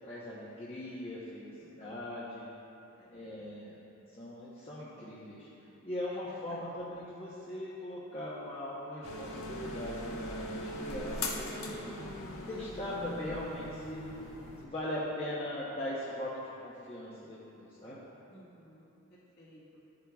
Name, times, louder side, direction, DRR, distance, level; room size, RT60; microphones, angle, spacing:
voice 1, 0.0-1.5 1.8-2.5 3.1-3.8 4.1-5.5 5.8-12.0 12.5-14.1 14.6-18.0, left 1 dB, 25° left, -9 dB, 0.9 m, -40 dB
voice 2, 3.0-3.6 6.1-6.8 18.3-19.6, equal, 45° left, -7 dB, 1.9 m, -57 dB
sound 1, 9.0-14.6, left 1 dB, 80° left, 1.0 m, -40 dB
13.0 x 8.8 x 2.3 m, 2.9 s
head